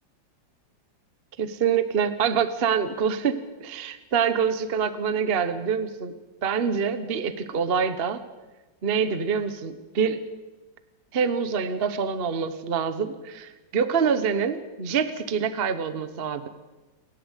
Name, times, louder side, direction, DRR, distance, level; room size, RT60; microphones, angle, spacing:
voice 1, 1.4-3.3 3.6-6.1 6.4-8.2 8.8-10.2 11.1-16.5, right 6 dB, 40° right, 11 dB, 1.1 m, -25 dB
28.0 x 12.0 x 8.2 m, 1.1 s
omnidirectional pair, 2.1 m